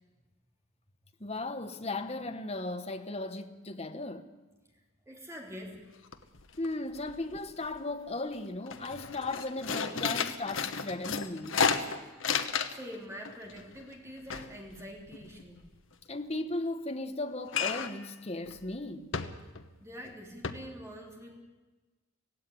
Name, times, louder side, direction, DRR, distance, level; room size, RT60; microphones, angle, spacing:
voice 1, 1.2-4.3 6.6-11.6 16.1-19.1, left 2 dB, 30° left, 1.1 m, -36 dB
voice 2, 4.7-5.8 12.7-15.6 19.8-21.4, equal, 10° right, 3.2 m, -45 dB
sound 1, 5.8-5.9 6.1-6.7 7.0-7.8 8.2-8.3 8.7-13.0 13.3-15.7 17.5-18.1 18.5-18.6 19.1-19.7 20.0-20.1 20.4-20.5, left 6 dB, 55° left, 1.1 m, -33 dB
17.0 x 16.0 x 10.0 m
head